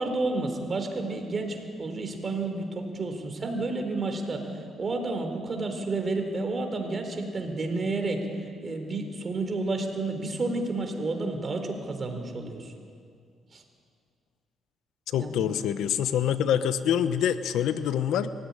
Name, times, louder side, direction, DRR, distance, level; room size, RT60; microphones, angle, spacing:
voice 1, 0.0-8.3 8.6-12.7 13.5-13.6 15.2-15.4, right 3 dB, 35° right, 5 dB, 4.1 m, -31 dB
voice 2, 15.1-18.3, left 9 dB, 85° left, 12 dB, 1.0 m, -26 dB
23.0 x 16.5 x 9.9 m, 2.2 s
cardioid pair, 90°, 0 cm